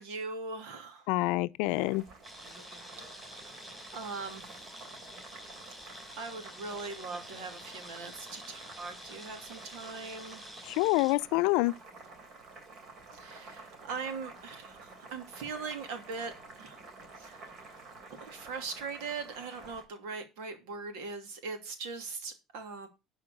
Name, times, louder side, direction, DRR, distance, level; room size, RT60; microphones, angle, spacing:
voice 1, 0.0-1.1 3.2-3.4 3.9-4.5 6.2-10.4 13.1-16.3 16.6-16.8 17.2-17.6 18.2-22.9, right 4 dB, 90° right, 2.7 m, -40 dB
voice 2, 1.1-2.0 10.7-11.7, left 21 dB, 85° left, 0.5 m, -27 dB
Boiling, 1.6-19.8, right 3 dB, 45° right, 3.1 m, -51 dB
sound 1, 2.2-11.1, equal, 5° right, 5.4 m, -49 dB
11.5 x 4.9 x 6.6 m
cardioid pair, 160°, 0 cm